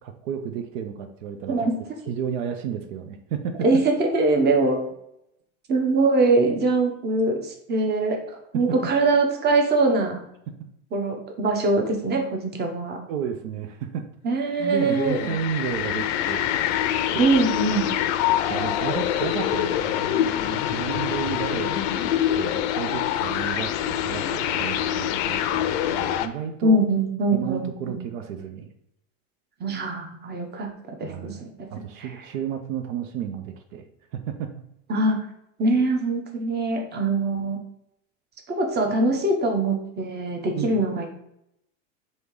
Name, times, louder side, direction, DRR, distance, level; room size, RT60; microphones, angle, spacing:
voice 1, 0.0-1.6 2.1-3.5 8.7-8.8 13.1-14.1 14.6-16.5 17.1-17.2 17.7-17.9 18.5-26.8 27.3-28.7 31.1-33.8 34.1-34.5 40.5-40.8, right 8 dB, 75° right, 6 dB, 0.6 m, -32 dB
voice 2, 1.5-1.8 3.6-4.8 5.7-10.2 10.9-13.0 14.2-15.3 17.2-17.9 26.6-28.0 29.6-30.7 31.0-31.7 32.0-32.1 34.9-35.2 35.6-37.6 38.5-41.1, right 2 dB, 25° right, 2 dB, 0.9 m, -23 dB
sound 1, 14.7-26.3, left 11 dB, 65° left, 0.5 m, -25 dB
3.3 x 2.8 x 4.6 m, 0.77 s
supercardioid pair, 110°, 38 cm